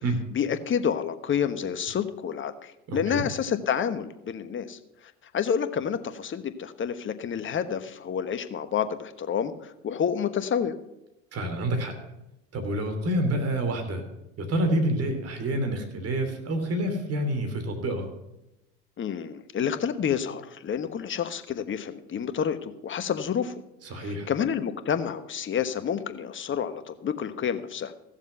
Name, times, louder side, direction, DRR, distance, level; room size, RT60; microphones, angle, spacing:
voice 1, 0.3-4.8 5.3-10.7 19.0-23.5 23.9-27.9, left 8 dB, 35° left, 10 dB, 1.2 m, -29 dB
voice 2, 2.9-3.2 11.3-11.9 12.5-14.0 14.4-18.1 23.9-24.3, right 1 dB, 45° right, 5 dB, 3.0 m, -28 dB
16.0 x 7.3 x 5.6 m, 0.91 s
hypercardioid pair, 75°, 34 cm